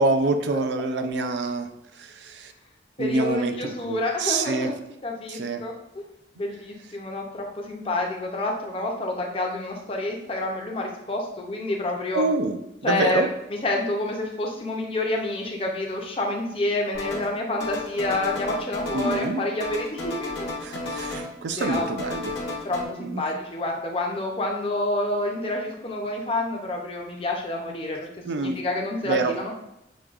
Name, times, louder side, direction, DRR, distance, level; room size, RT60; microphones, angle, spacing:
voice 1, 0.0-1.7 2.0-2.5 3.0-4.7 5.3-5.6 12.1-13.3 18.9-19.4 20.6-22.4 23.0-23.2 28.3-28.6 29.0-29.3, right 3 dB, 75° right, 8 dB, 0.4 m, -26 dB
voice 2, 3.0-4.7 5.0-6.0 6.4-12.2 12.8-20.5 20.9-21.1 21.6-21.9 22.6-28.1 28.3-29.5, left 2 dB, 30° left, 1 dB, 0.5 m, -28 dB
sound 1, 16.9-17.3 17.6-19.3 19.6-21.3 21.6-22.8, left 2 dB, 75° left, 0.9 m, -33 dB
6.1 x 2.2 x 2.4 m, 0.85 s
head